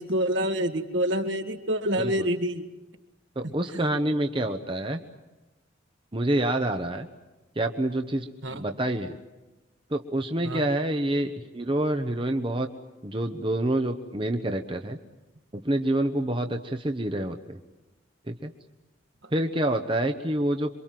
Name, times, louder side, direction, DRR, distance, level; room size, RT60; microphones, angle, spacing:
voice 1, 0.0-2.6 8.4-8.7 10.4-10.7, equal, 65° right, 6 dB, 2.0 m, -27 dB
voice 2, 3.4-5.0 6.1-7.1 7.6-8.3 8.5-9.2 9.9-12.7 13.0-15.0 15.5-17.6 18.3-18.5 19.3-20.7, right 1 dB, 25° right, 6 dB, 1.0 m, -27 dB
27.5 x 24.5 x 7.6 m, 1.1 s
head